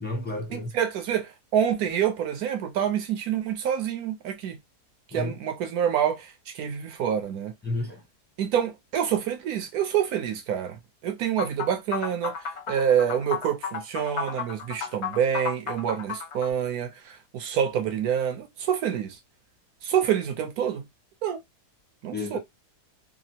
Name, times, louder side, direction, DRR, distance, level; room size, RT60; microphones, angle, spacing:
voice 1, 0.0-0.7 5.1-5.4 7.6-8.0 22.1-22.4, left 2 dB, 10° left, 0.5 m, -31 dB
voice 2, 0.5-4.6 5.1-7.5 8.4-10.8 11.0-19.2 19.8-20.8 21.2-21.4 22.0-22.4, right 9 dB, 70° right, 1.2 m, -27 dB
sound 1, 11.4-16.5, left 6 dB, 60° left, 0.7 m, -33 dB
3.3 x 2.0 x 2.8 m
omnidirectional pair, 1.7 m